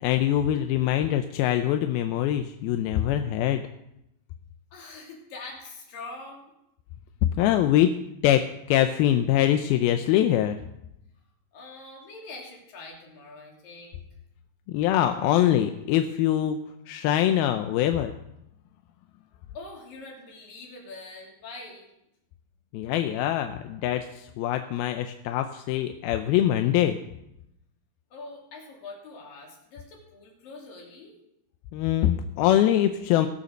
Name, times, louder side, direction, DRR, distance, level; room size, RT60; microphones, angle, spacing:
voice 1, 0.0-3.6 7.4-7.9 8.2-10.6 14.7-16.6 16.9-18.1 22.7-27.0 31.7-33.3, left 12 dB, 80° left, 7 dB, 2.4 m, -23 dB
voice 2, 4.7-6.5 11.5-14.0 19.5-21.9 28.1-31.2, left 3 dB, 55° left, -2 dB, 4.6 m, -43 dB
19.0 x 6.8 x 6.5 m, 0.81 s
omnidirectional pair, 4.8 m